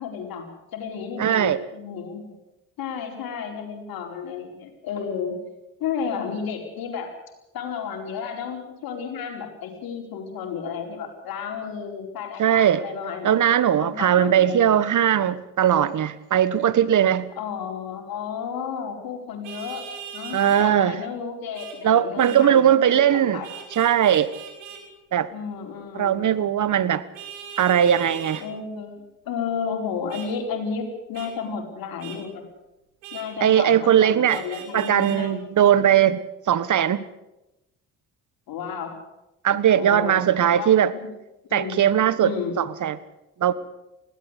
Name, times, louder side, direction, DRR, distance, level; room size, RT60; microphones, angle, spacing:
voice 1, 0.0-2.3 2.8-5.4 5.8-7.1 7.5-13.4 13.8-14.7 17.4-19.8 20.1-23.5 25.3-26.2 28.4-32.4 33.1-35.4 38.5-39.0 39.7-41.1 41.4-41.8 42.2-42.6, left 6 dB, 70° left, 3 dB, 4.7 m, -32 dB
voice 2, 1.2-1.6 12.4-12.8 13.2-17.3 20.3-21.0 21.8-23.4 23.7-24.3 25.1-25.3 25.9-27.0 27.6-28.4 33.4-34.4 34.7-37.0 39.4-40.9 41.5-43.0 43.4-43.5, right 9 dB, 55° right, 16 dB, 1.5 m, -19 dB
Vehicle horn car horn honking, 19.4-20.7 21.5-21.8 22.2-22.4 23.4-24.8 27.1-28.4 30.1-30.3 31.1-31.3 32.0-32.2 33.0-33.3 34.3-35.2, right 8 dB, 90° right, 3.5 m, -39 dB
20.5 x 17.0 x 8.3 m, 0.96 s
hypercardioid pair, 50°, 37 cm